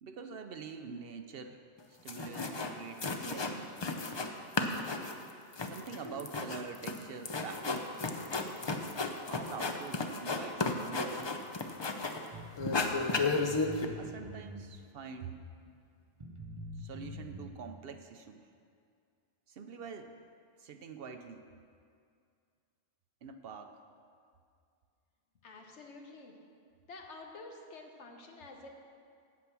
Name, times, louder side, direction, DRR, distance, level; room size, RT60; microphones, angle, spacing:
voice 1, 0.0-1.6 2.0-3.7 5.6-7.9 9.3-11.4 14.0-15.4 16.8-18.4 19.5-20.1 20.6-21.4 23.2-23.8, right 5 dB, 65° right, 7 dB, 0.8 m, -45 dB
sound 1, 1.8-1.9 2.1-2.7 3.0-4.3 4.5-12.3 12.6-13.8, left 3 dB, 35° left, 0.5 m, -34 dB
sound 2, 12.3-15.0 15.7-15.8 16.2-17.5, equal, 30° right, 0.8 m, -45 dB
voice 2, 25.4-26.4 26.9-28.7, left 3 dB, 90° left, 2 dB, 1.4 m, -49 dB
8.6 x 8.2 x 6.0 m, 2.3 s
omnidirectional pair, 1.1 m